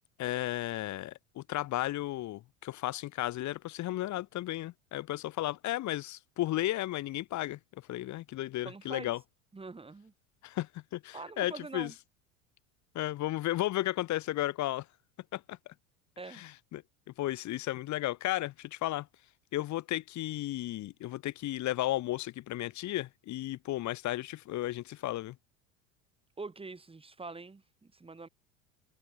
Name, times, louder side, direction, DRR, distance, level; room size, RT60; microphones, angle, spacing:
voice 1, 0.2-7.6 7.9-9.2 10.4-11.9 12.9-14.9 15.3-15.6 16.3-16.8 17.2-19.1 19.5-25.4, left 15 dB, 45° left, 2.8 m, -34 dB
voice 2, 8.6-9.1 9.5-10.1 11.1-11.9 16.2-16.4 26.4-28.3, right 3 dB, 15° right, 2.9 m, -44 dB
figure-of-eight pair, 75°, 41 cm